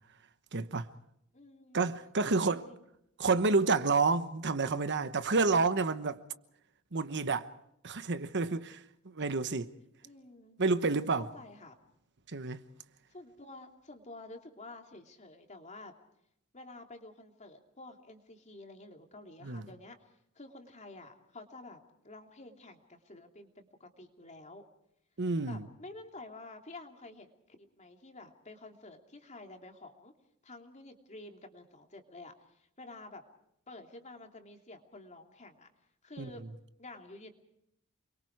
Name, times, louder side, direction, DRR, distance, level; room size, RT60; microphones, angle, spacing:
voice 1, 0.5-0.9 1.7-2.6 3.2-6.2 6.9-7.5 7.8-9.7 10.6-11.3 12.3-12.6 19.4-19.7 25.2-25.6 36.2-36.3, right 4 dB, 55° right, 1.1 m, -29 dB
voice 2, 1.3-1.9 2.2-2.8 10.0-10.6 11.2-11.8 13.1-15.9 16.5-20.0 20.3-24.7 25.5-30.1 30.4-33.2 33.7-35.7 36.0-36.4 36.8-37.4, left 2 dB, 35° left, 3.0 m, -50 dB
29.5 x 23.0 x 4.8 m
head